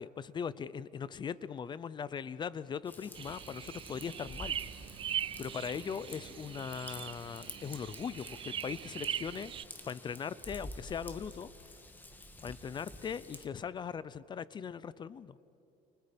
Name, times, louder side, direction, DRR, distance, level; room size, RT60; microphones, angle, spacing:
voice 1, 0.0-4.6 5.4-11.5 12.4-15.4, left 7 dB, 30° left, 18 dB, 0.5 m, -40 dB
Raindrop / Vehicle horn car horn honking / Trickle dribble, 2.8-13.5, left 1 dB, 10° left, 1.6 m, -50 dB
sound 1, 3.1-9.6, right 9 dB, 30° right, 0.5 m, -41 dB
30.0 x 29.0 x 5.2 m, 2.8 s
cardioid pair, 150°, 17 cm